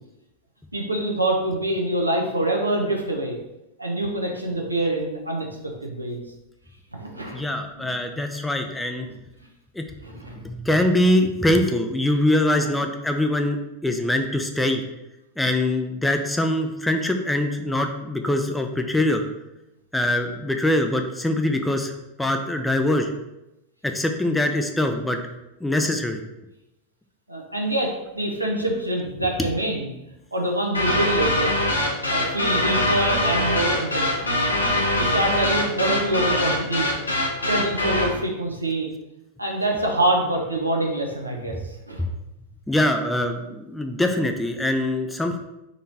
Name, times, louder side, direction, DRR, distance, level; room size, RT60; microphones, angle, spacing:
voice 1, 0.7-3.4 3.8-6.2 6.9-7.4 7.8-7.9 9.1-9.2 10.0-10.3 12.6-12.7 27.3-29.9 30.3-31.8 32.1-34.4 34.9-36.9 37.5-38.9 39.4-41.6 41.9-42.0, right 1 dB, 85° right, 0 dB, 0.8 m, -25 dB
voice 2, 7.3-9.1 9.8-9.9 10.4-14.8 15.4-19.2 19.9-21.9 22.2-23.1 23.8-25.2 25.6-26.2 42.7-45.4, left 1 dB, 5° left, 5 dB, 0.4 m, -23 dB
sound 1, 30.7-38.2, left 1 dB, 80° left, 0.8 m, -23 dB
4.0 x 3.2 x 4.0 m, 0.93 s
figure-of-eight pair, 90°, 0 cm